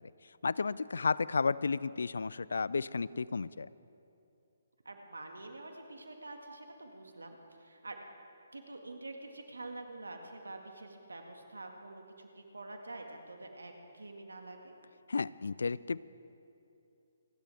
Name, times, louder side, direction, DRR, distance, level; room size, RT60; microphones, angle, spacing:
voice 1, 0.4-3.7 15.1-16.0, left 4 dB, 75° left, 20 dB, 0.3 m, -32 dB
voice 2, 4.9-8.0 8.5-14.7, right 2 dB, 85° right, 3 dB, 1.9 m, -47 dB
28.5 x 11.0 x 3.5 m, 2.7 s
figure-of-eight pair, 140°, 0 cm